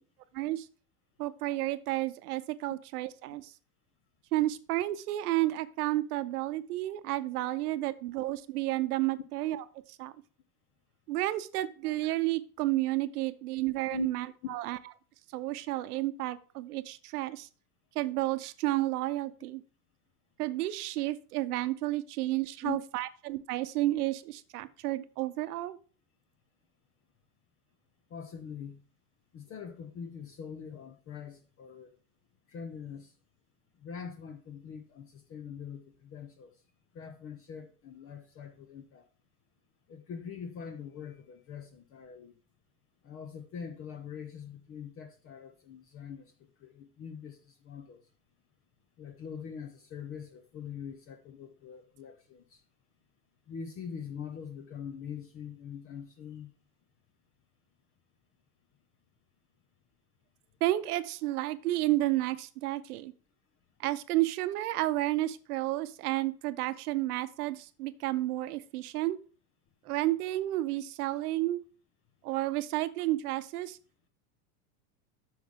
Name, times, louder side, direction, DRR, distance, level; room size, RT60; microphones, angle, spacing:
voice 1, 0.4-0.7 1.2-3.5 4.3-10.1 11.1-14.8 15.3-17.5 17.9-19.6 20.4-25.8 60.6-63.1 63.8-69.2 69.8-71.6 72.2-73.8, right 16 dB, 85° right, 0.9 m, -31 dB
voice 2, 28.1-28.8 29.3-31.9 32.5-33.1 33.8-36.5 36.9-39.0 39.9-42.4 43.0-46.3 46.6-48.0 49.0-52.6 53.5-56.5, left 7 dB, 30° left, 0.8 m, -43 dB
7.9 x 6.4 x 3.6 m
supercardioid pair, 140°, 44 cm